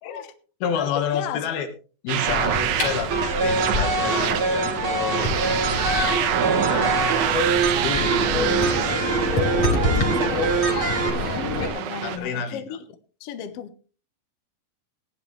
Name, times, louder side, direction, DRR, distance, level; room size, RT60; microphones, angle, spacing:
voice 1, 0.0-0.3 0.7-1.5 9.8-10.5 10.9-12.8 13.2-13.8, left 9 dB, 65° left, 1.6 m, -35 dB
voice 2, 0.6-1.7 2.0-5.3 6.7-7.0 7.7-9.0 9.8-10.2 12.0-12.6, left 7 dB, 90° left, 3.5 m, -29 dB
sound 1, 2.1-12.2, right 10 dB, 80° right, 2.6 m, -27 dB
sound 2, 2.3-11.7, left 2 dB, 40° left, 3.5 m, -28 dB
sound 3, 3.1-11.1, right 3 dB, 55° right, 1.6 m, -25 dB
17.5 x 10.5 x 3.3 m
omnidirectional pair, 4.2 m